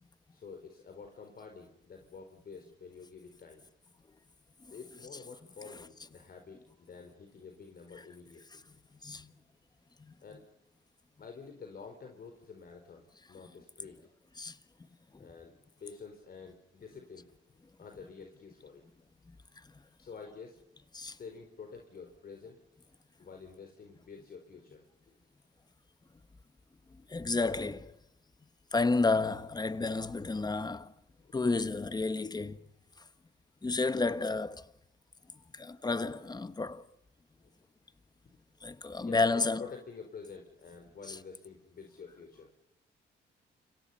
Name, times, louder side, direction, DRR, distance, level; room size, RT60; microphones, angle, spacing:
voice 1, 0.3-3.6 4.7-8.8 10.2-10.5 11.2-14.0 15.2-17.4 17.8-18.8 20.0-20.6 21.1-22.6 23.2-25.2 31.2-31.4 35.7-35.8 37.4-37.5 38.7-42.5, left 5 dB, 50° left, 4.3 m, -49 dB
voice 2, 9.0-9.3 10.0-10.1 14.4-14.6 15.1-15.3 20.9-21.2 27.1-28.0 28.7-30.9 31.3-32.6 33.6-34.7 35.5-36.8 38.6-39.6 41.1-41.2, left 3 dB, 20° left, 1.3 m, -31 dB
29.5 x 25.0 x 5.7 m
cardioid pair, 90°, 20 cm